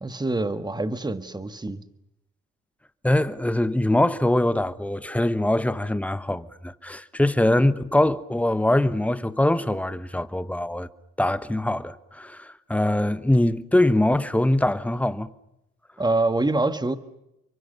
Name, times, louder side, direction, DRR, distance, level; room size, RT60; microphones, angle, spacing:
voice 1, 0.0-1.8 16.0-17.0, right 2 dB, 15° right, 1.7 m, -25 dB
voice 2, 3.0-10.9 11.2-15.3, left 1 dB, 5° left, 1.2 m, -23 dB
28.5 x 24.0 x 6.8 m
cardioid pair, 90°, 30 cm